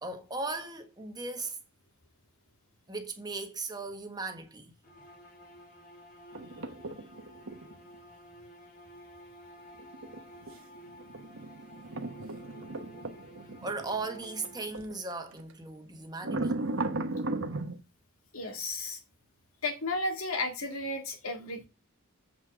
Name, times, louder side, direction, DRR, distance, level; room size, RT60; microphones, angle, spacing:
voice 1, 0.0-1.6 2.9-4.7 13.6-16.5, right 3 dB, 20° right, 1.3 m, -37 dB
sound 1, 4.8-15.1, equal, 40° left, 3.0 m, -52 dB
sound 2, 6.3-7.7 9.8-14.9 15.3-15.5 16.2-17.8, right 2 dB, 65° right, 1.2 m, -36 dB
voice 2, 18.3-19.0 19.6-21.7, left 2 dB, 75° left, 2.2 m, -33 dB
7.7 x 5.8 x 4.9 m
head